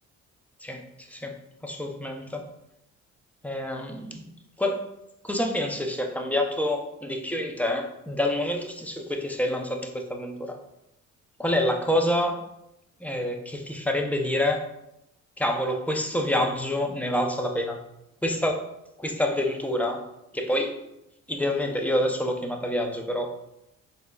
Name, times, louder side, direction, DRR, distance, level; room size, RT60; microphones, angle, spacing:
voice 1, 0.6-1.4 1.6-2.5 3.4-4.3 4.6-4.9 5.2-10.6 11.4-12.4 13.0-14.7 15.4-17.8 18.2-18.7 19.0-20.1 20.3-20.8 21.3-23.4, left 1 dB, 5° left, 2 dB, 0.5 m, -27 dB
4.1 x 3.7 x 2.3 m, 0.85 s
cardioid pair, 90°, 30 cm